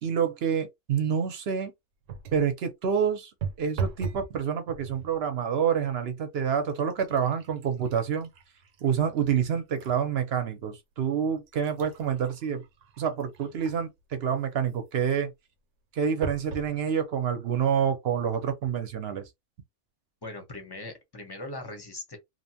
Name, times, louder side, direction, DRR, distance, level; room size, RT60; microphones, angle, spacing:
voice 1, 0.0-1.7 2.3-3.3 3.6-8.3 8.8-12.6 13.0-15.3 15.9-19.2, right 7 dB, 65° right, 0.8 m, -27 dB
sound 1, 2.1-2.5 3.4-4.3 4.7-5.2 5.9-6.0 6.4-10.0 10.5-10.6 11.3-14.0 16.2-16.7 17.4-17.5 17.8-17.9, right 5 dB, 90° right, 1.0 m, -39 dB
voice 2, 20.2-22.2, left 2 dB, 25° left, 0.6 m, -40 dB
2.8 x 2.1 x 2.6 m
omnidirectional pair, 1.2 m